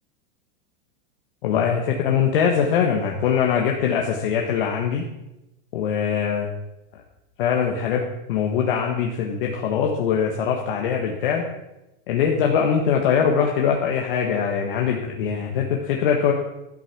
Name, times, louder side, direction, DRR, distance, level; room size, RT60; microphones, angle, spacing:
voice 1, 1.4-5.1 5.7-6.5 7.4-8.0 8.3-11.4 12.1-16.3, left 7 dB, 65° left, 1 dB, 1.6 m, -22 dB
12.0 x 8.2 x 6.0 m, 0.96 s
supercardioid pair, 175°, 29 cm